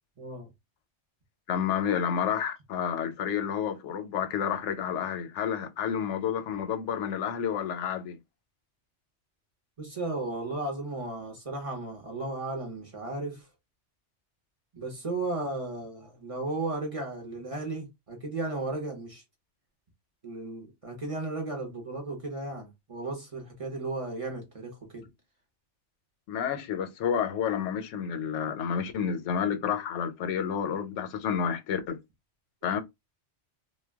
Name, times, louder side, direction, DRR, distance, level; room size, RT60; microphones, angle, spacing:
voice 1, 0.2-0.5 9.8-13.5 14.7-19.2 20.2-25.1, right 2 dB, 35° right, 0.6 m, -35 dB
voice 2, 1.5-8.2 26.3-32.0 32.6-32.8, left 8 dB, 90° left, 0.9 m, -30 dB
2.2 x 2.1 x 3.3 m
omnidirectional pair, 1.2 m